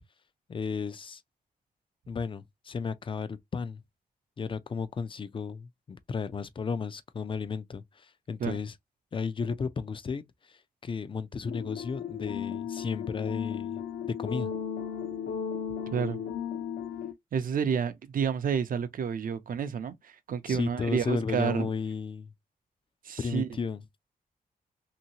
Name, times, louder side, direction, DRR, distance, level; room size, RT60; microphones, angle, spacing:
voice 1, 0.5-1.2 2.1-3.8 4.4-8.7 9.1-14.5 20.5-22.3 23.2-23.8, left 5 dB, 35° left, 0.4 m, -34 dB
sound 1, 11.4-17.1, left 7 dB, 70° left, 0.7 m, -35 dB
voice 2, 17.3-21.7 23.0-23.5, right 7 dB, 60° right, 0.6 m, -30 dB
2.8 x 2.7 x 2.7 m
cardioid pair, 105°, 16 cm